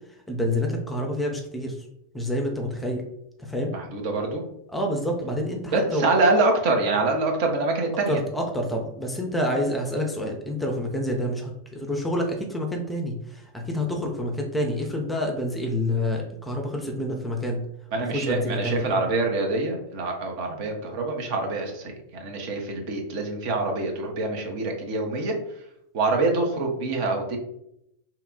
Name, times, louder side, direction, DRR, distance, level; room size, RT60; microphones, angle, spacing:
voice 1, 0.3-1.8 2.1-3.0 3.4-3.7 4.7-6.1 8.1-17.6 18.1-19.0, left 1 dB, 5° left, 2 dB, 0.6 m, -28 dB
voice 2, 3.7-4.4 5.7-8.2 17.9-25.3 25.9-27.4, right 3 dB, 45° right, 2 dB, 0.7 m, -25 dB
2.8 x 2.3 x 3.6 m, 0.79 s
figure-of-eight pair, 90°, 0 cm